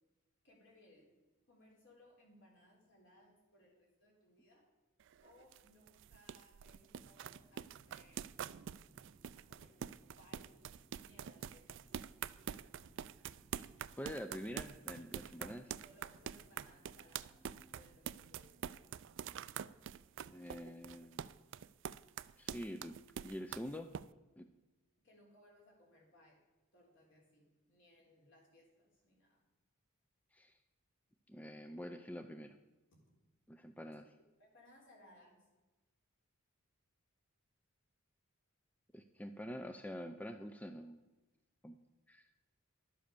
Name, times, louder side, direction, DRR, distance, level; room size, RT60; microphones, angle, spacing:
voice 1, 0.4-1.1 1.5-4.6 5.2-8.2 9.5-9.7 10.2-10.5 11.0-11.9 15.8-17.4 17.7-18.6 25.0-26.4 26.7-29.4 34.4-35.5, left 1 dB, 60° left, -1 dB, 3.6 m, -65 dB
sound 1, 5.0-24.0, right 8 dB, 55° right, 0.3 m, -46 dB
sound 2, 7.0-20.4, right 1 dB, 30° left, 1.6 m, -69 dB
voice 2, 14.0-15.7 20.3-21.3 22.4-22.9 23.2-23.9 24.4-24.5 30.3-30.5 31.3-32.6 33.5-34.2 38.9-41.0 41.6-41.8 42.1-42.3, equal, 5° left, 8 dB, 0.4 m, -46 dB
11.5 x 7.7 x 6.8 m, 1.2 s
head